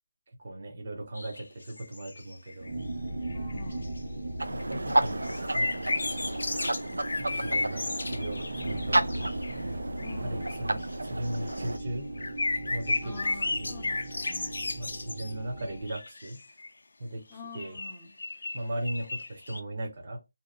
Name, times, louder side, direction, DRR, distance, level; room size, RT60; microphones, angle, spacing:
voice 1, 0.4-2.7 4.5-6.6 7.2-9.1 10.2-12.1 12.7-13.8 14.8-16.4 17.0-17.3 17.5-17.8 18.5-20.2, right 1 dB, 35° right, 0.7 m, -38 dB
sound 1, 1.1-2.8 3.3-4.0 4.4-9.6 10.0-10.2 10.4-11.8 12.2-15.3 15.6-16.7 17.5-19.6, left 3 dB, 65° left, 0.4 m, -34 dB
sound 2, 2.6-15.9, right 1 dB, 65° right, 1.3 m, -38 dB
voice 2, 3.0-3.9 10.0-10.5 13.0-14.6 17.3-18.1, left 3 dB, 5° left, 0.5 m, -46 dB
sound 3, 4.4-11.8, right 2 dB, 90° right, 0.3 m, -32 dB
2.8 x 2.2 x 2.5 m
figure-of-eight pair, 170°, 0 cm